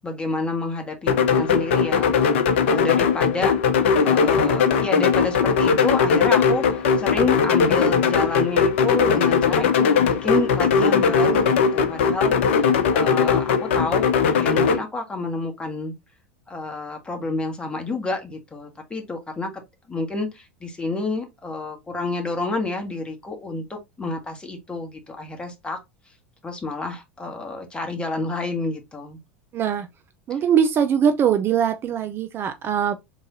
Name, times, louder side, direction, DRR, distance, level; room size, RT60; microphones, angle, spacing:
voice 1, 0.0-2.2 2.7-3.6 4.0-14.1 14.4-15.9 16.5-19.5 19.9-25.8 26.4-29.2 30.3-30.4, left 3 dB, 15° left, 1.5 m, -29 dB
sound 1, 1.1-14.8, left 6 dB, 70° left, 0.7 m, -19 dB
voice 2, 29.5-29.9 30.3-33.0, right 8 dB, 35° right, 0.5 m, -21 dB
3.8 x 3.1 x 3.8 m
hypercardioid pair, 85°, 7 cm